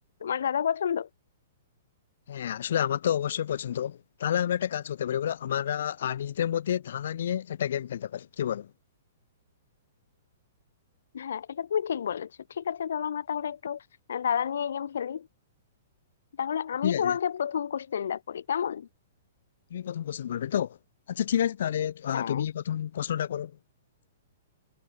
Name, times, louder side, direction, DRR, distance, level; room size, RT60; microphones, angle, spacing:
voice 1, 0.2-1.1 11.1-13.8 14.1-15.3 16.4-18.9 22.1-22.5, left 8 dB, 75° left, 1.3 m, -30 dB
voice 2, 2.3-8.7 16.8-17.2 19.7-20.8 21.1-23.5, left 10 dB, 60° left, 2.1 m, -29 dB
hypercardioid pair, 170°, 0 cm